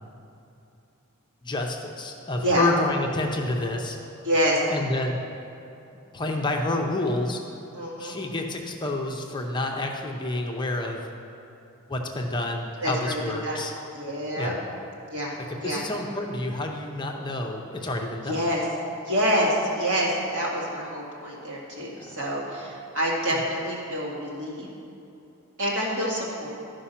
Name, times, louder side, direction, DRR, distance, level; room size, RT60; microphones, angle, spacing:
voice 1, 1.4-4.0 4.7-5.2 6.1-7.4 8.0-11.1 11.9-13.7 14.4-14.5 15.6-18.4 21.9-22.2 23.3-23.4, left 2 dB, 20° left, 2 dB, 0.6 m, -29 dB
voice 2, 4.2-4.6 7.7-8.1 12.8-13.7 13.9-14.5 15.1-15.3 15.6-15.9 18.3-18.7 19.0-24.7 25.6-26.5, equal, 65° right, -5 dB, 2.2 m, -27 dB
12.5 x 5.2 x 5.7 m, 2.8 s
head